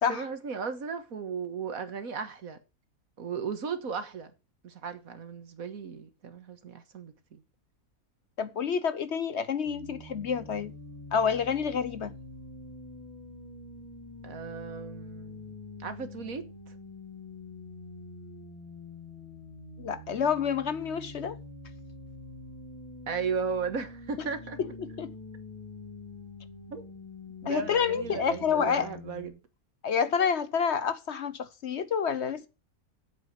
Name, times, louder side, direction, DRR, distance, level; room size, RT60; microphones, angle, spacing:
voice 1, 0.1-2.6 3.2-4.3 4.6-7.4 14.2-15.5 15.8-16.4 23.1-24.6 26.7-26.8 27.4-29.4, right 5 dB, 70° right, 1.8 m, -35 dB
voice 2, 8.4-10.7 11.1-12.1 19.8-21.4 24.8-25.1 27.4-28.9 29.8-32.5, left 7 dB, 55° left, 0.9 m, -28 dB
sound 1, 9.6-29.3, left 2 dB, 25° left, 3.1 m, -45 dB
8.2 x 8.0 x 7.8 m
omnidirectional pair, 1.5 m